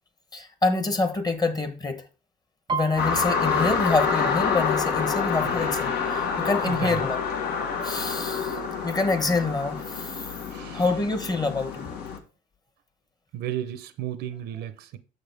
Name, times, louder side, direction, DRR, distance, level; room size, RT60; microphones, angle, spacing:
voice 1, 0.3-2.0 2.7-7.2 7.8-10.3 10.7-11.9, left 3 dB, 25° left, 1.1 m, -26 dB
Piano, 2.7-6.3 6.7-7.1 7.4-8.1 8.7-8.8 9.0-10.0 10.4-10.5, right 5 dB, 25° right, 0.5 m, -37 dB
sound 1, 3.0-12.2, left 5 dB, 75° left, 1.5 m, -28 dB
Screaming, 3.7-8.6, left 9 dB, 60° left, 0.6 m, -36 dB
voice 2, 6.7-7.0 10.5-10.8 13.3-15.0, right 11 dB, 80° right, 0.8 m, -33 dB
6.8 x 6.3 x 3.5 m
cardioid pair, 110°, 17 cm